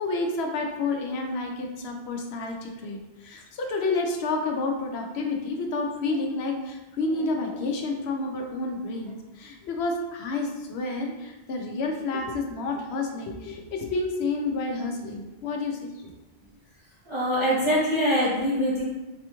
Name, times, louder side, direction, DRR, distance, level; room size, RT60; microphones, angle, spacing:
voice 1, 0.0-15.9, left 3 dB, 90° left, 2 dB, 0.8 m, -30 dB
voice 2, 17.1-18.8, equal, 35° right, -9 dB, 0.7 m, -23 dB
4.2 x 2.9 x 2.2 m, 1.1 s
omnidirectional pair, 1.1 m